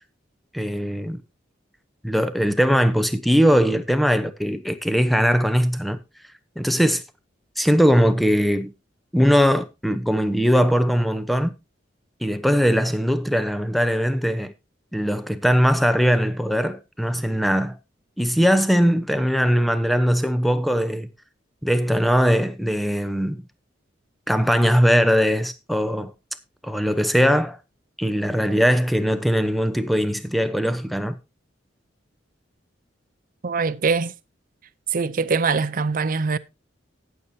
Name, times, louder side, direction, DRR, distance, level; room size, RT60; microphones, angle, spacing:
voice 1, 0.5-1.2 2.0-6.0 6.6-7.0 7.6-8.7 9.1-11.5 12.2-14.5 14.9-17.8 18.2-21.1 21.6-23.4 24.3-26.1 26.6-27.6 28.0-31.2, equal, ahead, 0.8 m, -20 dB
voice 2, 33.4-34.1 34.9-36.4, right 4 dB, 45° right, 0.6 m, -23 dB
18.5 x 6.9 x 2.8 m
head